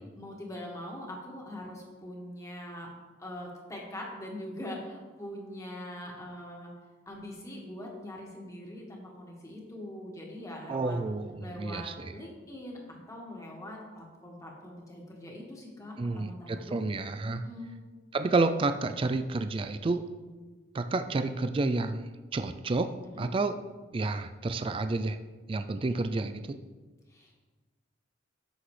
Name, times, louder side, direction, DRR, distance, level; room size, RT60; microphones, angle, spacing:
voice 1, 0.2-2.9 3.2-6.7 7.1-11.0 11.4-16.8 17.3-17.8 23.0-23.3 27.1-27.4, left 1 dB, 20° left, -1 dB, 1.7 m, -42 dB
voice 2, 10.7-12.1 16.0-17.4 18.1-20.0 20.7-22.9 23.2-23.6 23.9-25.2 25.5-26.6, right 3 dB, 30° right, 9 dB, 0.3 m, -30 dB
13.0 x 6.0 x 3.3 m, 1.3 s
head